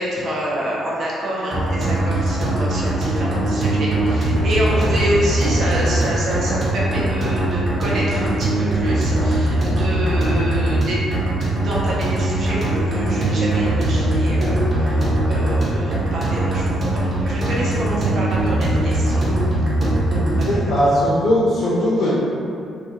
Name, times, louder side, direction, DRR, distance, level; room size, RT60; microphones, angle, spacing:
voice 1, 0.0-19.2 20.2-20.5, equal, 60° right, -6 dB, 0.6 m, -27 dB
sound 1, 1.5-20.7, right 1 dB, 40° right, 0.9 m, -20 dB
voice 2, 20.4-22.1, equal, 60° left, -8 dB, 0.6 m, -18 dB
2.4 x 2.2 x 2.8 m, 2.6 s
cardioid pair, 90°, 0 cm